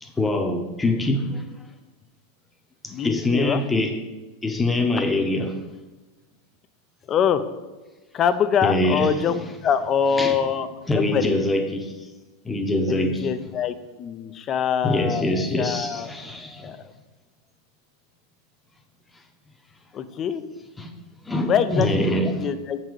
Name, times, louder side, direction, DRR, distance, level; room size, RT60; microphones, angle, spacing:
voice 1, 0.0-1.4 2.8-4.0 4.4-5.6 8.6-9.2 10.2-10.4 10.9-11.9 12.4-13.3 14.8-16.7 20.8-20.9 21.2-22.5, left 1 dB, 10° left, 0.8 m, -24 dB
voice 2, 2.9-3.6 7.1-7.4 8.1-10.7 10.9-11.4 12.9-15.3 15.6-16.1 16.6-16.8 19.9-20.4 21.5-22.8, left 8 dB, 35° left, 0.5 m, -24 dB
6.3 x 4.0 x 4.7 m
hypercardioid pair, 110°, 0 cm